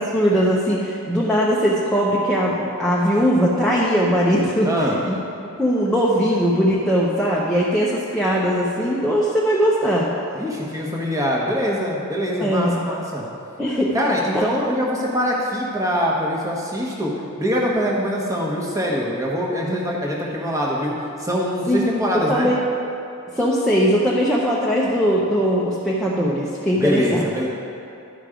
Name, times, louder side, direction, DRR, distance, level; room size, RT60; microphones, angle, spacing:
voice 1, 0.0-4.7 5.0-5.1 5.6-10.1 12.4-12.8 13.6-13.9 14.3-14.5 21.7-21.8 22.1-22.6 23.3-27.3, equal, ahead, -6 dB, 0.7 m, -20 dB
voice 2, 4.6-5.0 10.3-13.2 13.9-17.1 17.4-22.5 26.8-27.5, equal, 15° right, -3 dB, 1.2 m, -23 dB
11.0 x 5.2 x 5.0 m, 2.8 s
head